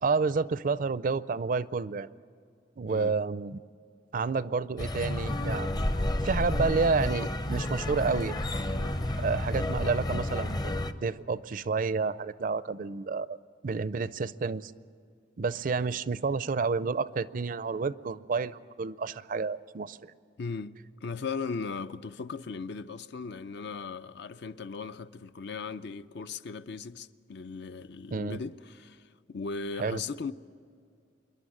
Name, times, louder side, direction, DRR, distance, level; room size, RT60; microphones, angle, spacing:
voice 1, 0.0-2.1 2.8-3.6 4.1-6.0 6.2-8.3 9.2-13.4 13.6-14.7 15.4-20.1 28.1-28.4 29.8-30.0, right 4 dB, 50° right, 0.5 m, -30 dB
sound 1, 4.8-10.9, left 1 dB, 25° left, 0.6 m, -30 dB
voice 2, 20.4-20.8 21.0-29.0 29.3-30.3, left 4 dB, 65° left, 0.5 m, -37 dB
26.5 x 11.0 x 9.9 m
head